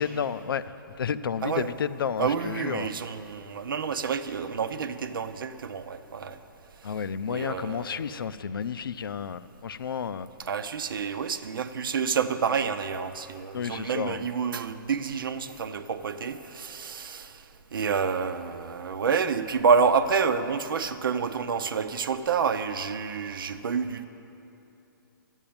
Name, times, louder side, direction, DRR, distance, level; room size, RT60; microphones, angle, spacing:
voice 1, 0.0-2.9 6.8-10.3 13.5-14.3, left 7 dB, 75° left, 14 dB, 0.6 m, -31 dB
voice 2, 1.4-1.7 2.2-6.4 7.3-8.0 10.4-17.3 17.7-24.1, right 6 dB, 70° right, 11 dB, 0.8 m, -28 dB
12.5 x 9.1 x 8.7 m, 2.9 s
hypercardioid pair, 150°, 12 cm